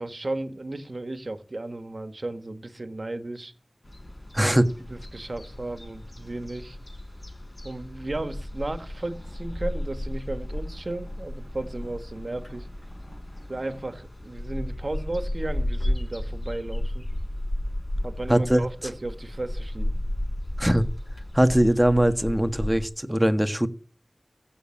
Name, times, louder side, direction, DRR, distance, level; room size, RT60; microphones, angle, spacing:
voice 1, 0.0-3.5 4.4-6.8 7.6-12.7 13.5-17.1 18.0-19.9, right 2 dB, 60° right, 1.7 m, -34 dB
sound 1, 3.8-22.9, left 1 dB, 50° left, 7.0 m, -33 dB
voice 2, 4.3-4.7 18.3-18.6 20.6-20.8 21.3-23.7, right 1 dB, 10° right, 1.5 m, -21 dB
15.0 x 7.0 x 8.6 m
wide cardioid pair, 45°, 0 cm